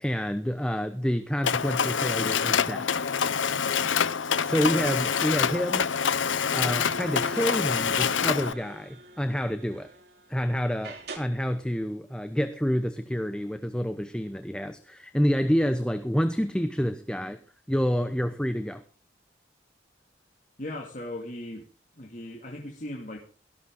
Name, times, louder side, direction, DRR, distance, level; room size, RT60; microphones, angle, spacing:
voice 1, 0.0-2.9 4.4-5.9 6.5-9.9 10.3-17.4 17.7-18.8, equal, 5° left, 0.8 m, -28 dB
Mechanisms, 1.4-8.5, left 7 dB, 90° left, 0.8 m, -26 dB
sound 1, 6.0-10.4 10.8-11.2, right 1 dB, 55° right, 3.6 m, -44 dB
voice 2, 20.6-21.7 21.9-23.2, left 1 dB, 40° left, 2.3 m, -38 dB
17.5 x 14.0 x 3.8 m
head